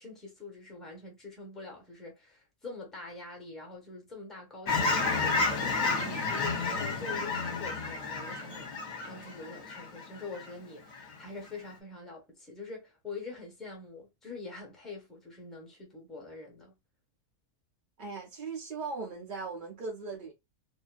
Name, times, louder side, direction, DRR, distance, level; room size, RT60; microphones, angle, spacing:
voice 1, 0.0-16.8, left 3 dB, ahead, 0.7 m, -45 dB
Fowl / Chirp tweet, 4.7-10.5 10.9-11.1, left 3 dB, 55° left, 1.0 m, -31 dB
voice 2, 18.0-20.3, right 4 dB, 55° right, 0.5 m, -38 dB
2.7 x 2.4 x 2.3 m
omnidirectional pair, 1.6 m